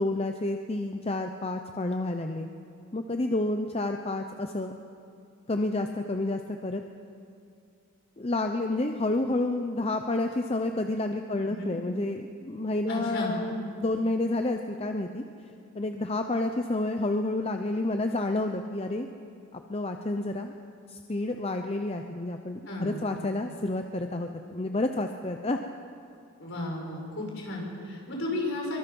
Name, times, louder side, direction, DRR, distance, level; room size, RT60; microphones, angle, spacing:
voice 1, 0.0-2.5 2.9-4.7 5.5-6.8 8.2-15.2 15.7-19.1 19.5-20.5 20.9-25.6, left 2 dB, 25° left, 5 dB, 0.7 m, -29 dB
voice 2, 11.3-11.8 12.9-13.3 22.7-23.0 26.4-28.8, left 2 dB, 55° left, -1 dB, 5.3 m, -34 dB
23.5 x 23.5 x 5.4 m, 2.5 s
head